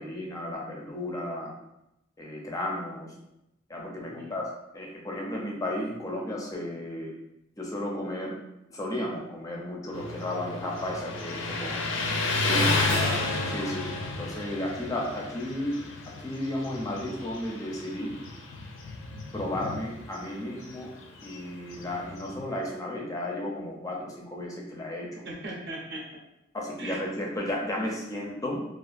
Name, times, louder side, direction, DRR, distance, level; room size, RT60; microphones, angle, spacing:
voice 1, 0.0-1.5 2.2-3.1 3.7-7.1 7.6-8.4 8.7-11.8 12.4-12.6 12.9-13.1 13.5-15.7 16.2-18.2 19.3-20.9 21.2-25.2 26.5-28.7, left 1 dB, 15° left, -1 dB, 0.4 m, -34 dB
voice 2, 4.0-4.3 12.4-13.3 25.2-26.0 26.8-27.0, right 2 dB, 60° right, -2 dB, 0.6 m, -36 dB
Motorcycle, 9.9-22.6, left 3 dB, 80° left, 0.4 m, -32 dB
Crash cymbal, 12.9-15.6, right 2 dB, 90° right, 0.8 m, -42 dB
2.6 x 2.4 x 2.4 m, 0.87 s
head